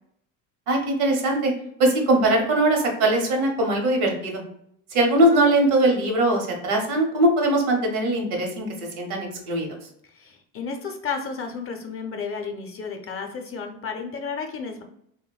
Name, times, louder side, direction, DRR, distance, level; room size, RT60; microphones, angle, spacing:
voice 1, 0.7-1.5 1.8-4.4 4.9-8.7 9.0-9.7, right 1 dB, 75° right, 2 dB, 0.9 m, -21 dB
voice 2, 10.1-14.8, left 5 dB, 35° left, 4 dB, 0.5 m, -32 dB
3.0 x 2.1 x 2.3 m, 0.72 s
hypercardioid pair, 75°, 42 cm